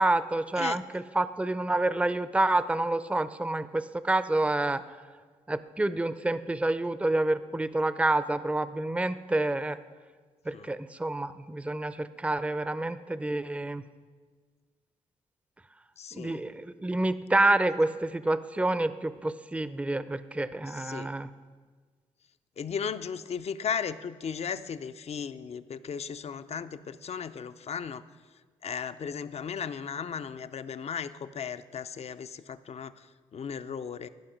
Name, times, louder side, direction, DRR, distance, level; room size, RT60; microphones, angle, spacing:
voice 1, 0.0-5.0 5.5-9.8 10.5-13.8 16.1-21.3, right 2 dB, 10° right, 14 dB, 0.5 m, -28 dB
voice 2, 16.0-16.4 20.7-21.1 22.6-28.0 28.6-34.1, left 7 dB, 55° left, 12 dB, 0.5 m, -36 dB
14.5 x 5.4 x 5.2 m, 1.5 s
supercardioid pair, 50°, 13 cm